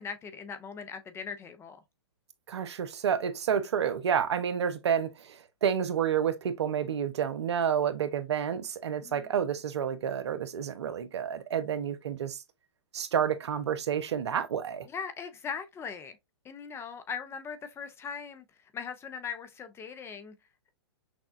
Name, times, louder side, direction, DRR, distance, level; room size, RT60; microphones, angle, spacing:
voice 1, 0.0-1.8 9.0-9.3 14.9-16.2 16.4-18.4 18.7-20.3, left 6 dB, 15° left, 0.7 m, -39 dB
voice 2, 2.5-12.4 12.9-14.9, right 8 dB, 75° right, 0.8 m, -29 dB
6.1 x 2.3 x 2.5 m
hypercardioid pair, 120°, 14 cm